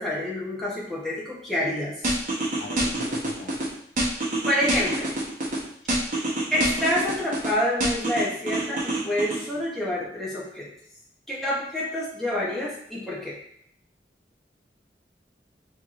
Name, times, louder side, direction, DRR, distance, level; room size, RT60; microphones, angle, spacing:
voice 1, 0.0-1.9 4.4-5.1 6.5-10.7 11.3-13.3, left 1 dB, ahead, -7 dB, 0.8 m, -27 dB
sound 1, 2.0-3.7 4.0-5.6 5.9-7.5 7.8-9.4, right 1 dB, 45° right, 0.9 m, -26 dB
voice 2, 2.6-3.5, left 3 dB, 65° left, 3 dB, 0.5 m, -40 dB
4.5 x 2.9 x 2.5 m, 0.69 s
head